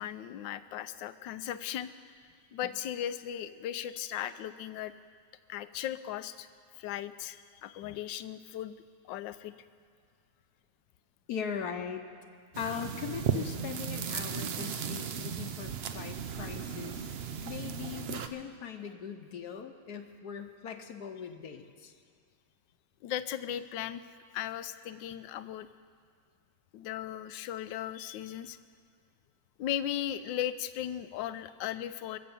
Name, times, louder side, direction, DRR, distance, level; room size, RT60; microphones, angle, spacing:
voice 1, 0.0-1.9 2.5-4.9 5.5-6.5 6.7-8.8 9.0-9.5 14.6-14.7 23.0-24.0 24.3-25.7 26.7-28.6 29.6-32.2, left 11 dB, 90° left, 13 dB, 1.3 m, -37 dB
voice 2, 11.3-12.0 12.6-17.1 17.4-21.9, left 7 dB, 65° left, 7 dB, 1.2 m, -40 dB
sound 1, 12.5-18.3, right 7 dB, 70° right, 0.5 m, -36 dB
22.5 x 7.5 x 7.1 m, 2.1 s
omnidirectional pair, 1.9 m